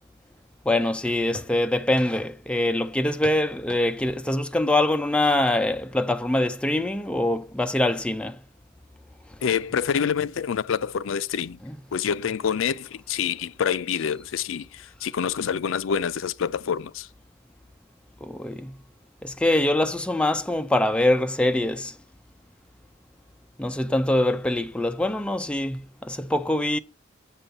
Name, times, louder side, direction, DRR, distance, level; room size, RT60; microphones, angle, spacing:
voice 1, 0.7-8.4 11.6-11.7 18.2-18.8 19.2-21.9 23.6-26.8, left 1 dB, 5° left, 0.4 m, -24 dB
voice 2, 9.4-11.6 11.9-17.1, left 7 dB, 70° left, 0.4 m, -27 dB
7.9 x 5.6 x 6.4 m
head